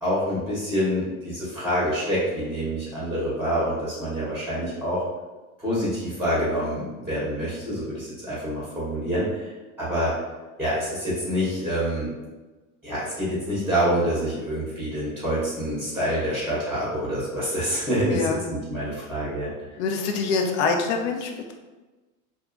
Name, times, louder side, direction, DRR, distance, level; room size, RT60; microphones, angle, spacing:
voice 1, 0.0-5.0 5.6-9.5 9.8-10.1 10.6-12.1 12.8-19.5, equal, 5° right, -9 dB, 0.8 m, -26 dB
voice 2, 18.1-18.4 19.8-21.5, left 4 dB, 55° left, 3 dB, 0.6 m, -25 dB
2.7 x 2.3 x 2.5 m, 1.2 s
hypercardioid pair, 120°, 42 cm